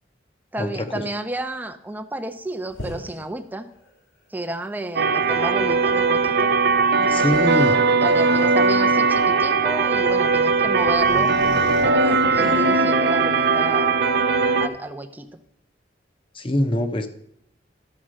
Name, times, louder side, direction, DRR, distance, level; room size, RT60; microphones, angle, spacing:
voice 1, 0.5-3.7 4.3-6.5 7.0-11.3 11.8-13.9 14.6-15.4, right 1 dB, 10° right, 5 dB, 0.6 m, -31 dB
sound 1, 2.7-3.2 3.8-3.9 6.3-6.4 7.2-9.1 10.2-10.3 10.6-13.0, equal, 85° left, 2.2 m, -37 dB
sound 2, 5.0-14.7, right 4 dB, 60° right, 0.6 m, -19 dB
voice 2, 7.1-7.7 16.3-17.1, left 1 dB, 30° left, 7 dB, 0.8 m, -23 dB
12.5 x 4.3 x 6.4 m, 0.78 s
head